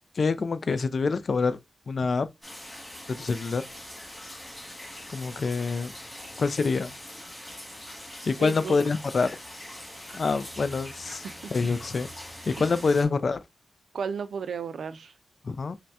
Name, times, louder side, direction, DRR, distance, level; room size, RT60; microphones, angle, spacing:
voice 1, 0.1-1.6 1.9-2.3 3.1-3.7 5.1-5.9 6.4-6.9 8.3-9.4 10.1-11.3 11.5-12.1 12.5-13.4 15.4-15.8, left 4 dB, 55° left, 0.4 m, -26 dB
rain night city ambience, 2.4-13.1, left 1 dB, 10° left, 2.0 m, -42 dB
voice 2, 8.4-8.8 11.0-11.5 12.6-12.7 13.9-15.1, right 6 dB, 90° right, 0.4 m, -34 dB
5.6 x 2.2 x 2.7 m
wide cardioid pair, 95°, 0 cm